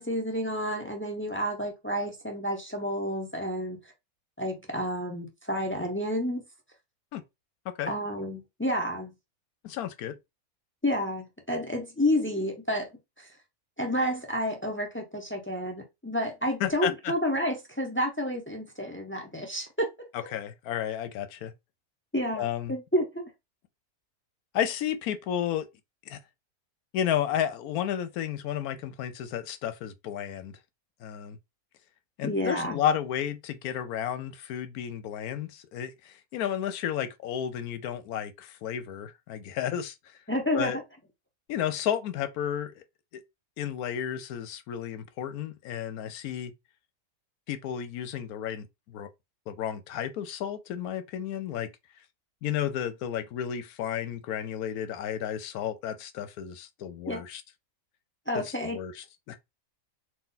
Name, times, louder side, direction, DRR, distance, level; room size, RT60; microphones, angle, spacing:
voice 1, 0.0-3.8 4.4-6.5 7.9-9.1 10.8-12.9 13.2-13.3 13.8-19.9 22.1-23.3 32.2-32.8 40.3-40.7 57.1-57.2 58.3-58.8, equal, 20° left, 0.3 m, -30 dB
voice 2, 9.6-10.2 16.6-17.1 20.1-21.5 22.4-22.7 24.5-25.7 26.1-26.2 26.9-30.6 31.0-31.4 32.2-40.0 40.5-40.8 41.5-42.8 43.1-43.2 43.6-46.5 47.5-49.1 49.5-51.7 52.4-57.4 58.4-59.4, left 10 dB, 80° left, 1.1 m, -32 dB
4.0 x 2.4 x 3.8 m
omnidirectional pair, 1.6 m